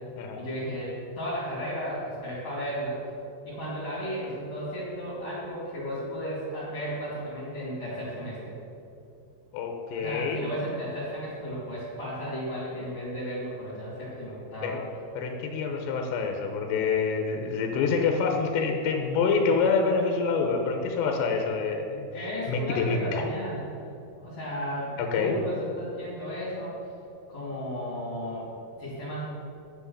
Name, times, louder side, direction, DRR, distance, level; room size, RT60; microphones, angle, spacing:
voice 1, 0.4-3.0 3.4-8.5 10.0-14.8 22.1-23.9 24.2-26.8 27.3-28.5 28.8-29.2, equal, 40° left, -9 dB, 2.9 m, -34 dB
voice 2, 9.5-10.5 14.6-14.8 15.2-22.1 22.5-23.3 25.0-25.4, left 5 dB, 80° left, 3 dB, 2.9 m, -26 dB
9.9 x 6.1 x 7.0 m, 2.6 s
omnidirectional pair, 5.4 m